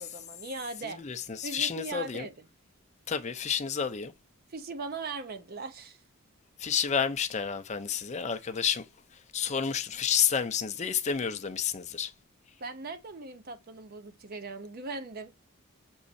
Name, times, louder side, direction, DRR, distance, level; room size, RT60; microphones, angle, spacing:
voice 1, 0.0-1.0 1.4-2.3 4.5-6.0 12.6-15.3, right 3 dB, 40° right, 0.6 m, -39 dB
voice 2, 0.8-2.3 3.1-4.1 6.6-8.9 9.1-12.1, left 7 dB, 30° left, 0.5 m, -30 dB
6.3 x 3.0 x 2.6 m
head